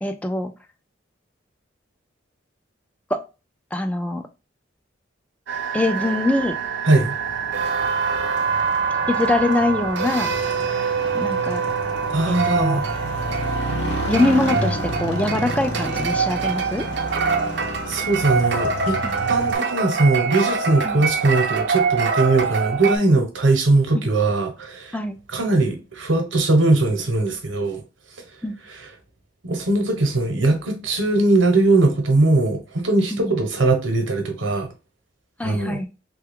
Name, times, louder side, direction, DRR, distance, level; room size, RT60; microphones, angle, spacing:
voice 1, 0.0-0.5 3.1-3.2 3.7-4.3 5.7-6.6 9.1-10.3 11.1-11.6 12.3-12.8 14.1-16.9 19.0-19.2 20.8-21.0 24.9-25.2 28.4-28.6 33.1-33.4 35.4-35.9, left 2 dB, 5° left, 0.3 m, -23 dB
sound 1, 5.5-23.0, right 5 dB, 65° right, 0.5 m, -24 dB
Motorcycle, 7.0-19.6, left 1 dB, 65° left, 0.7 m, -31 dB
voice 2, 12.1-12.8 17.9-19.0 19.3-25.0 25.3-27.8 28.7-28.9 29.4-34.7 35.4-35.8, right 2 dB, 85° right, 0.9 m, -20 dB
3.2 x 2.3 x 3.5 m
head